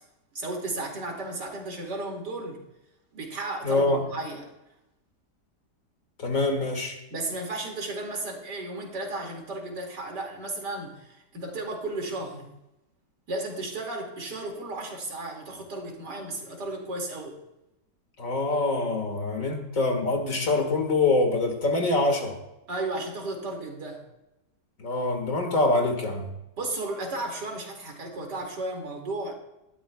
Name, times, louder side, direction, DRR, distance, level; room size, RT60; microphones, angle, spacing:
voice 1, 0.3-2.6 3.1-4.5 7.1-12.5 13.3-17.4 22.7-24.0 26.6-29.3, right 2 dB, 75° right, 1 dB, 3.0 m, -34 dB
voice 2, 3.6-4.0 6.2-7.0 18.2-22.4 24.8-26.3, left 2 dB, 50° left, 4 dB, 2.2 m, -25 dB
18.5 x 12.5 x 2.3 m, 0.91 s
omnidirectional pair, 1.8 m